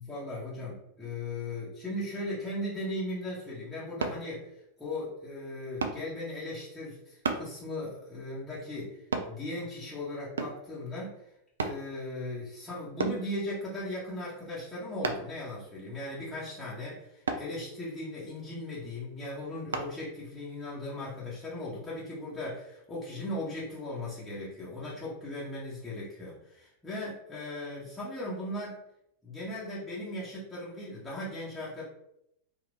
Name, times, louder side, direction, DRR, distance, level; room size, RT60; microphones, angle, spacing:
voice 1, 0.0-11.3 11.6-28.8 29.2-31.8, left 1 dB, 10° left, -10 dB, 1.1 m, -38 dB
sound 1, 4.0-4.2 5.8-6.0 7.2-7.5 9.1-9.3 10.4-10.7 11.6-11.8 13.0-13.2 15.0-15.4 17.3-17.5 19.7-19.9 20.5-20.6, right 4 dB, 70° right, 0.4 m, -32 dB
2.8 x 2.4 x 3.4 m, 0.79 s
figure-of-eight pair, 90°, 0 cm